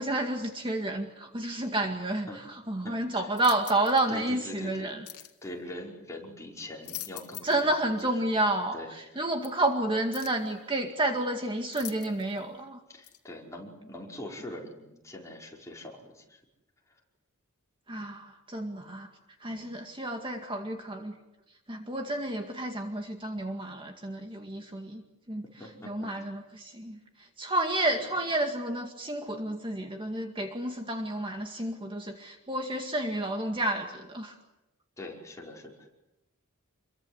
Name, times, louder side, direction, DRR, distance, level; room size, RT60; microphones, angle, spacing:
voice 1, 0.0-5.1 7.4-12.8 17.9-19.1 19.4-21.1 21.7-25.0 25.3-25.4 25.8-34.4, right 1 dB, 25° right, 4 dB, 2.1 m, -30 dB
voice 2, 2.8-3.2 4.1-4.9 5.4-7.5 8.0-8.1 8.7-9.2 12.9-16.4 19.5-19.7 25.6-26.1 35.0-35.9, left 1 dB, 15° left, -2 dB, 5.4 m, -43 dB
sound 1, 3.3-4.1 5.0-5.4 6.6-7.7 8.0-8.1 9.4-9.5 10.1-10.5 11.7-12.4 13.0-13.2, left 15 dB, 80° left, 1.9 m, -43 dB
28.5 x 23.0 x 8.1 m, 0.93 s
head